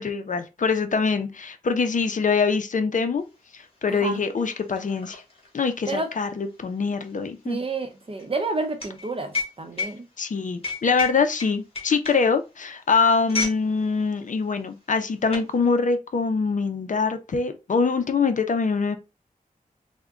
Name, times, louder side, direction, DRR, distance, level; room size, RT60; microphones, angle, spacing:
voice 1, 0.0-3.2 3.5-5.2 5.5-7.6 10.2-19.0, left 4 dB, 60° left, 0.5 m, -24 dB
sound 1, 3.3-3.4 3.7-13.7 14.0-14.2 14.9-15.5, left 4 dB, 40° left, 1.5 m, -33 dB
voice 2, 3.9-4.2 5.9-6.1 7.4-10.1, right 3 dB, 40° right, 0.7 m, -29 dB
3.5 x 2.1 x 3.6 m
wide cardioid pair, 100°, 15 cm